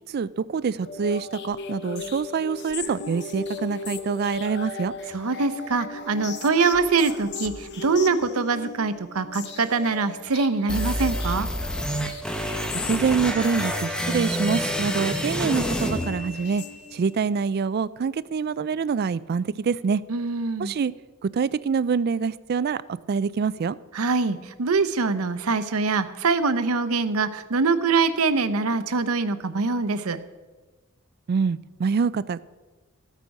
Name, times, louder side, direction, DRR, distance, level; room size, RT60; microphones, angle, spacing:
voice 1, 0.1-4.9 12.9-16.6 16.9-20.0 20.6-20.9 21.3-22.8 23.1-23.8 31.3-32.4, right 5 dB, 45° right, 0.3 m, -25 dB
sound 1, 0.8-17.3, left 4 dB, 55° left, 0.8 m, -37 dB
voice 2, 5.1-11.5 20.1-20.7 23.9-30.2, right 4 dB, 85° right, 0.7 m, -24 dB
sound 2, 10.7-16.7, equal, 5° left, 0.8 m, -28 dB
13.5 x 8.3 x 5.2 m
head